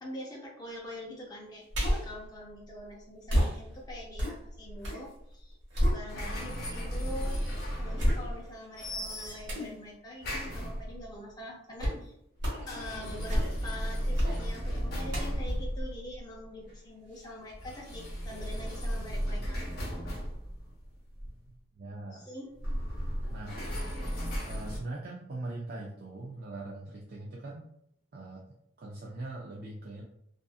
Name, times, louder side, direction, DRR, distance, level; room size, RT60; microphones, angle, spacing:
voice 1, 0.0-5.6 5.8-7.4 7.8-12.1 12.7-19.6 22.1-22.5, left 1 dB, 20° left, -2 dB, 0.5 m, -44 dB
sound 1, 1.7-2.2 3.3-5.1 5.4-6.5 7.0-7.1 8.0-8.6 9.5-9.8 11.8-12.1 12.4-12.7 13.1-13.8 14.1-14.4 15.1-16.8 17.2-17.3, equal, 70° right, 1.1 m, -30 dB
sound 2, 6.1-8.5 8.8-9.7 10.2-11.1 12.4-16.0 17.5-21.5 22.5-24.8, equal, 50° left, 0.9 m, -35 dB
voice 2, 21.8-22.3 23.3-23.6 24.4-27.6 28.1-28.4 28.8-30.0, right 2 dB, 50° right, -3 dB, 0.4 m, -41 dB
2.5 x 2.5 x 2.3 m, 0.71 s
head